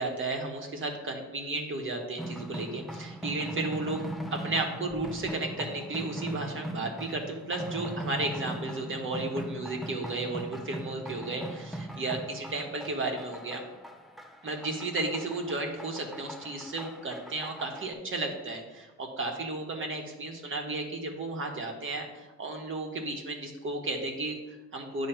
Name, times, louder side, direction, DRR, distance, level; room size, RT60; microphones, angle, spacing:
voice 1, 0.0-4.0 4.3-13.6 14.4-25.1, right 2 dB, 40° right, 1 dB, 1.3 m, -34 dB
sound 1, 2.2-17.9, right 1 dB, ahead, 0.6 m, -40 dB
8.6 x 3.1 x 5.7 m, 1.1 s
cardioid pair, 90°, 30 cm